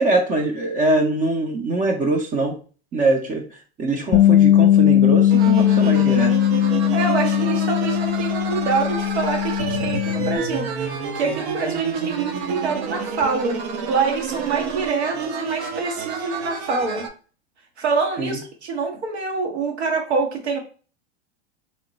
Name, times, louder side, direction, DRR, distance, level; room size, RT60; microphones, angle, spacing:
voice 1, 0.0-2.6 2.9-3.4 3.8-6.3 18.2-18.4, right 2 dB, 25° right, 4 dB, 0.6 m, -22 dB
Bass guitar, 4.1-10.4, left 11 dB, 40° left, 0.6 m, -18 dB
sound 1, 5.3-17.1, right 6 dB, 65° right, 0.9 m, -29 dB
voice 2, 6.9-13.6 13.9-17.1 17.8-20.6, right 4 dB, 85° right, 2 dB, 1.2 m, -25 dB
3.1 x 2.2 x 3.9 m, 0.38 s
hypercardioid pair, 110°, 32 cm